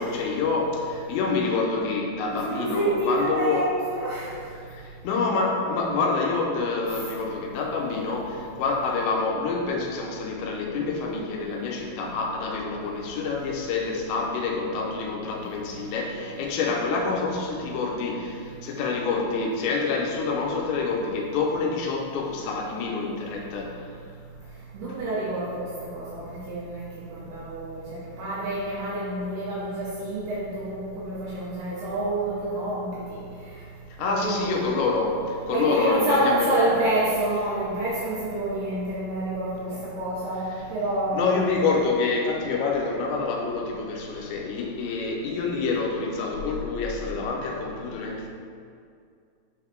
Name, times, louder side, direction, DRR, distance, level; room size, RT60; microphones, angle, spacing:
voice 1, 0.0-3.6 4.6-23.8 34.0-36.5 40.5-40.6 41.1-48.3, left 4 dB, 80° left, 0 dB, 2.8 m, -27 dB
voice 2, 2.3-3.6 3.9-4.3 6.9-7.1 24.7-26.8 27.1-33.2 34.0-34.6 35.5-41.4, right 1 dB, 70° right, -8 dB, 2.8 m, -28 dB
7.0 x 3.9 x 4.4 m, 2.3 s
omnidirectional pair, 5.5 m